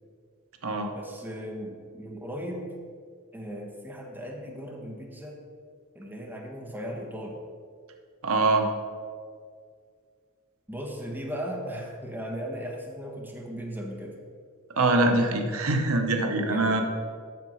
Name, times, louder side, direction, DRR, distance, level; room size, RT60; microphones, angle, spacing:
voice 1, 0.9-2.7 3.3-5.4 5.9-7.4 10.7-14.2 16.5-16.8, equal, 10° right, -1 dB, 1.1 m, -37 dB
voice 2, 8.2-8.7 14.7-16.8, right 2 dB, 70° right, 4 dB, 0.9 m, -23 dB
7.8 x 6.6 x 5.6 m, 2.1 s
head